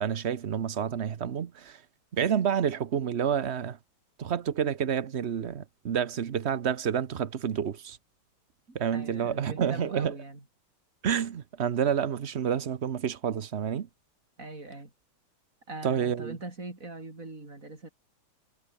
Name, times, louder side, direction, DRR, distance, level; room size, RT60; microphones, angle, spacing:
voice 1, 0.0-1.8 2.1-3.8 4.2-8.0 8.7-10.1 11.0-13.9 15.8-16.4, right 8 dB, 55° right, 0.7 m, -29 dB
voice 2, 8.7-10.4 14.4-14.9 15.7-17.9, right 2 dB, 35° right, 5.1 m, -41 dB
omnidirectional pair, 2.4 m